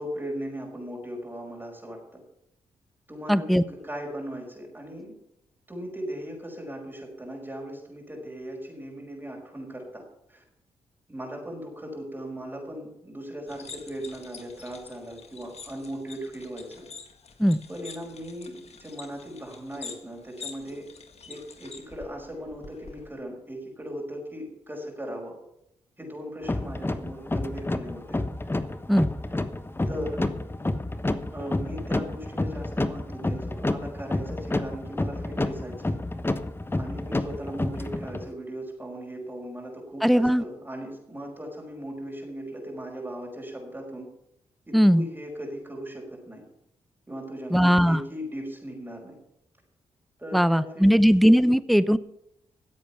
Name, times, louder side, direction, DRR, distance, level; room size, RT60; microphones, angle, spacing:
voice 1, 0.0-2.2 3.1-5.2 5.7-10.0 10.3-10.4 11.1-16.9 17.7-20.9 21.3-25.4 26.0-28.2 29.9-30.2 31.3-36.0 36.7-44.1 44.7-46.4 47.1-49.2 50.2-51.0, equal, 15° right, 0 dB, 5.3 m, -38 dB
voice 2, 3.3-3.6 17.4-17.6 28.9-29.1 40.0-40.4 44.7-45.1 47.5-48.0 50.3-52.0, equal, ahead, 15 dB, 0.7 m, -19 dB
sound 1, 13.5-23.1, left 5 dB, 55° left, 1.8 m, -46 dB
sound 2, 26.4-38.3, left 2 dB, 15° left, 1.0 m, -30 dB
14.5 x 8.2 x 5.8 m, 0.79 s
supercardioid pair, 50°, 13 cm